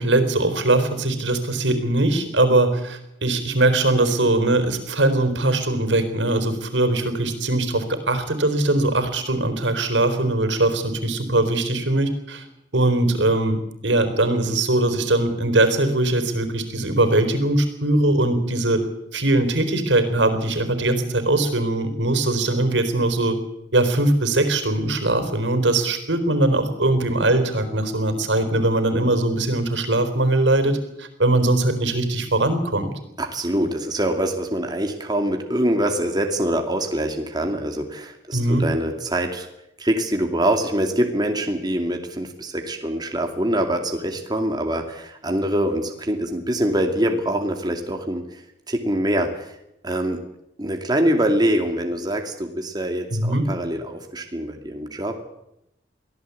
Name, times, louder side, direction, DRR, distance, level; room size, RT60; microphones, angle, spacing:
voice 1, 0.0-12.4 12.7-18.8 19.1-23.4 23.7-32.9 38.3-38.6 53.1-53.5, right 2 dB, 90° right, 9 dB, 4.2 m, -21 dB
voice 2, 33.2-39.5 39.8-49.6 49.8-50.2 50.6-55.3, right 1 dB, 25° right, 4 dB, 2.4 m, -24 dB
23.5 x 16.0 x 8.4 m, 0.82 s
head